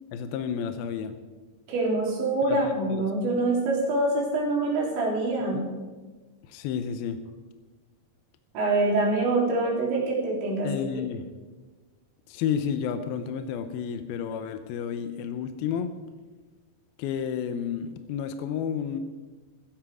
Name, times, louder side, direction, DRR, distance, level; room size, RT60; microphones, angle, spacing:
voice 1, 0.1-1.1 2.5-3.1 5.5-5.7 6.5-7.2 10.6-11.3 12.3-15.9 17.0-19.0, left 8 dB, 75° left, 9 dB, 2.3 m, -31 dB
voice 2, 1.7-5.6 8.5-10.7, right 2 dB, 85° right, -2 dB, 5.8 m, -25 dB
16.0 x 15.0 x 4.9 m, 1.3 s
omnidirectional pair, 5.1 m